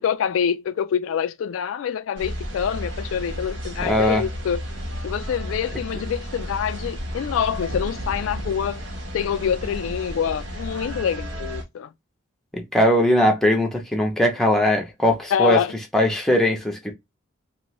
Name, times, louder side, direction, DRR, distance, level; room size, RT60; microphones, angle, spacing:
voice 1, 0.0-4.6 5.0-8.8 9.1-11.9 15.3-15.7, left 8 dB, 85° left, 0.3 m, -26 dB
sound 1, 2.2-11.6, equal, 85° right, 1.2 m, -32 dB
voice 2, 3.8-4.3 12.7-15.6 15.9-16.9, left 1 dB, ahead, 0.6 m, -20 dB
3.0 x 2.6 x 2.9 m
head